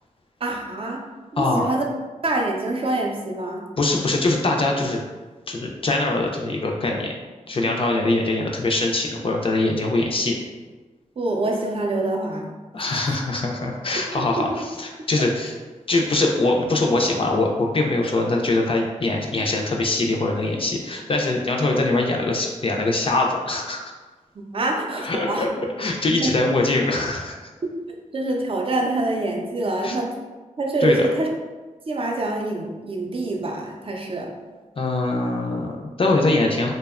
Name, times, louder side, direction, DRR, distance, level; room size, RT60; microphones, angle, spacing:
voice 1, 0.4-1.0 1.3-1.8 2.2-3.7 11.2-12.5 14.4-14.5 24.5-25.5 26.2-26.3 28.1-30.1 30.6-31.3 31.9-34.3, right 2 dB, 45° right, 1 dB, 0.4 m, -25 dB
voice 2, 1.4-1.7 3.8-5.0 5.5-7.1 7.5-10.4 12.7-15.5 15.9-23.9 25.0-25.5 25.8-27.4 29.8-30.0 30.8-31.1 34.8-36.7, left 2 dB, 45° left, 0 dB, 0.4 m, -22 dB
2.7 x 2.1 x 2.3 m, 1.3 s
cardioid pair, 60°, 13 cm